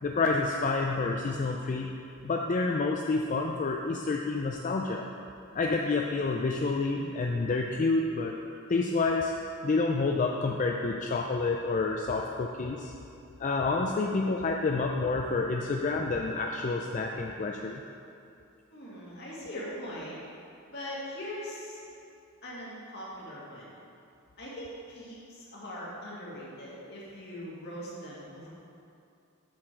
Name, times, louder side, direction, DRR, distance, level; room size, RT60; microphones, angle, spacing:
voice 1, 0.0-1.9 2.2-5.0 5.5-8.4 8.7-9.3 9.6-12.9 13.4-17.8, left 3 dB, 35° left, 1 dB, 0.4 m, -28 dB
voice 2, 18.7-20.2 20.7-21.8 22.4-23.8 24.4-28.5, equal, 55° left, -6 dB, 2.0 m, -41 dB
7.5 x 6.9 x 4.5 m, 2.6 s
head